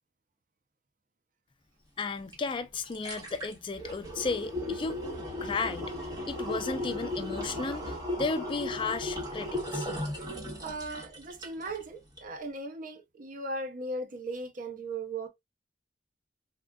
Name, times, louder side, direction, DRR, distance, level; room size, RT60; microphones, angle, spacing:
voice 1, 2.0-5.0 5.4-5.9 6.3-9.9, left 4 dB, 30° left, 0.4 m, -34 dB
sound 1, 2.3-2.4 2.7-11.8 12.2-12.3, left 1 dB, 20° right, 1.2 m, -36 dB
voice 2, 10.6-15.3, right 2 dB, 50° right, 0.6 m, -38 dB
3.6 x 2.4 x 2.2 m
head